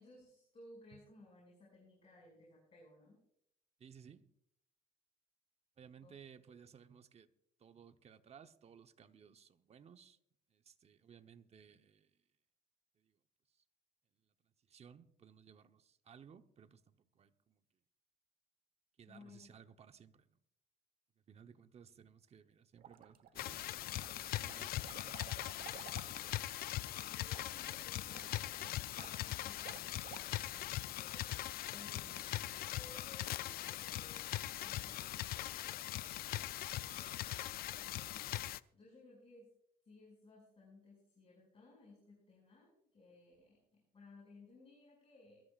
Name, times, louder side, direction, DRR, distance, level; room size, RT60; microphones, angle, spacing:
voice 1, 0.0-3.2 6.0-6.2 6.4-6.6 19.1-19.5 27.0-36.6 36.8-38.3 38.7-39.5 39.8-45.4, left 2 dB, 35° left, 6.0 m, -61 dB
voice 2, 3.8-4.2 5.8-7.3 7.6-10.2 10.5-12.2 13.0-13.2 14.2-14.3 14.7-17.6 19.0-20.3 21.3-23.8 24.2-25.3, right 7 dB, 40° right, 0.9 m, -59 dB
sound 1, 22.8-23.6 24.0-30.7, right 9 dB, 60° right, 1.1 m, -56 dB
sound 2, 23.4-38.6, left 14 dB, 65° left, 0.4 m, -41 dB
22.0 x 13.5 x 2.5 m
cardioid pair, 110°, 17 cm